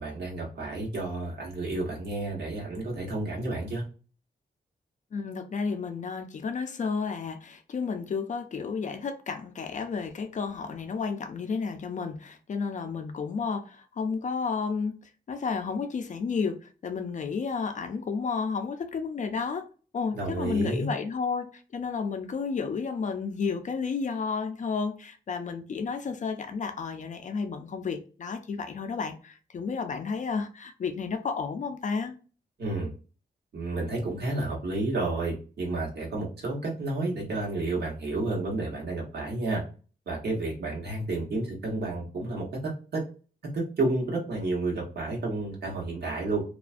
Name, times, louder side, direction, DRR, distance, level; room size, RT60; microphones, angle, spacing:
voice 1, 0.0-3.8 20.1-20.9 32.6-32.9 33.5-39.6 40.1-43.0 43.5-46.4, right 2 dB, 70° right, -2 dB, 1.0 m, -31 dB
voice 2, 5.1-15.0 15.3-19.7 19.9-32.2, left 5 dB, 45° left, 7 dB, 0.4 m, -32 dB
2.4 x 2.1 x 2.4 m, 0.37 s
wide cardioid pair, 135°, 17 cm